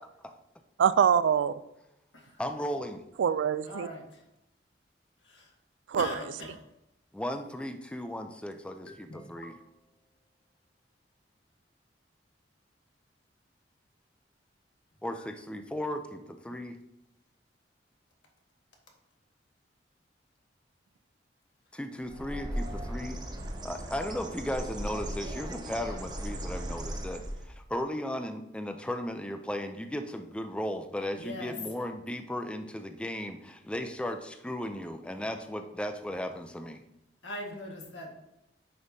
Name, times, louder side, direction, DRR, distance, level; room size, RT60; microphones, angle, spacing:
voice 1, 0.8-1.5 3.2-3.9 5.9-6.1, right 8 dB, 85° right, 16 dB, 0.3 m, -24 dB
voice 2, 2.4-3.0 7.1-9.5 15.0-16.8 21.7-23.2 23.6-36.8, left 1 dB, 5° left, 7 dB, 0.4 m, -36 dB
voice 3, 3.6-4.2 5.2-5.5 6.0-6.6 8.9-9.7 15.1-15.3 31.2-31.6 37.2-38.1, left 1 dB, 85° left, 1 dB, 1.6 m, -41 dB
Bird, 22.0-27.6, right 1 dB, 25° right, 0.8 m, -37 dB
9.6 x 5.3 x 2.7 m, 0.87 s
head